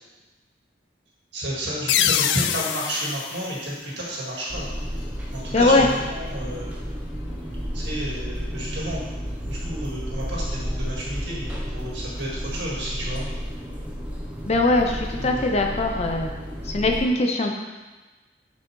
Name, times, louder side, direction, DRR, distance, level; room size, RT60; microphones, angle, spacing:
voice 1, 1.3-4.7 5.3-6.8 7.7-9.0 9.4-13.2 15.2-15.4, right 1 dB, 85° right, -5 dB, 1.8 m, -31 dB
sound 1, 1.9-4.5, left 9 dB, 85° left, 0.3 m, -25 dB
sound 2, 4.5-17.0, equal, 5° right, 0.8 m, -32 dB
voice 2, 5.5-5.9 14.5-16.3 16.6-17.5, left 2 dB, 35° left, 2 dB, 0.6 m, -21 dB
6.4 x 5.5 x 3.1 m, 1.2 s
head